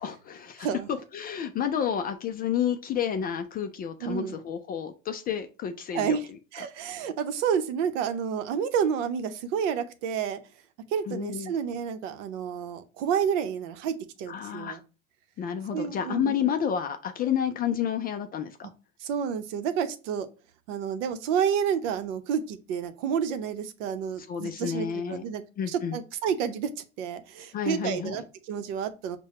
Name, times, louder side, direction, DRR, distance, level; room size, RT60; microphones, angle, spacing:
voice 1, 0.0-6.2 11.1-11.5 14.3-14.8 15.4-18.7 24.3-25.2 25.6-26.0 27.5-28.2, left 8 dB, 25° left, 0.3 m, -30 dB
voice 2, 4.0-4.4 5.9-10.4 10.9-14.8 15.7-16.4 19.0-20.3 20.7-25.4 25.7-29.2, right 7 dB, 60° right, 0.8 m, -30 dB
5.6 x 2.2 x 4.2 m
hypercardioid pair, 85°, 41 cm